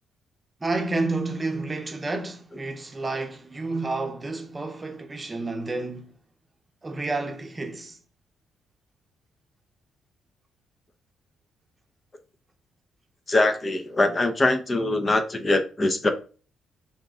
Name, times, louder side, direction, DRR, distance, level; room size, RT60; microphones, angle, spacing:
voice 1, 0.6-6.1 6.8-8.0, right 3 dB, 25° right, 0.8 m, -30 dB
voice 2, 13.3-16.1, left 2 dB, 30° left, 0.6 m, -23 dB
4.1 x 3.5 x 3.6 m
cardioid pair, 90°, 0 cm